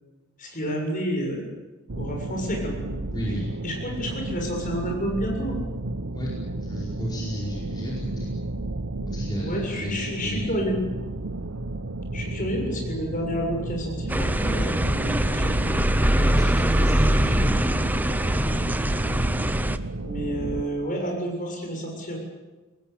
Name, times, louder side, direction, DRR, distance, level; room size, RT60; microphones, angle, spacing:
voice 1, 0.4-1.5 2.0-2.9 3.6-5.6 9.4-10.8 12.1-15.8 16.1-17.1 20.0-22.2, equal, 40° left, 1 dB, 7.2 m, -30 dB
sound 1, 1.9-20.6, right 2 dB, 80° right, 1.1 m, -33 dB
voice 2, 3.1-3.5 6.1-6.3 6.5-8.3 9.1-10.5 16.3-17.6, left 1 dB, 20° left, -4 dB, 4.9 m, -33 dB
sound 2, 14.1-19.8, right 1 dB, 10° right, 0.8 m, -22 dB
24.5 x 20.0 x 8.8 m, 1.2 s
head